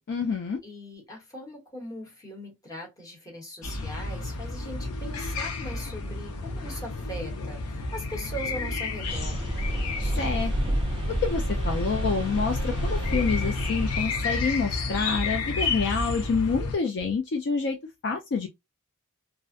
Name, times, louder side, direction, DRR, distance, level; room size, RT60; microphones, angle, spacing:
voice 1, 0.1-0.6 10.2-10.8 11.2-17.8 18.0-18.5, left 5 dB, 50° left, 0.4 m, -27 dB
voice 2, 0.6-9.4, equal, 15° left, 0.9 m, -40 dB
sound 1, 3.6-16.8, left 3 dB, 90° left, 0.6 m, -31 dB
sound 2, 9.1-14.1, right 1 dB, 25° right, 0.4 m, -30 dB
2.5 x 2.0 x 2.5 m
head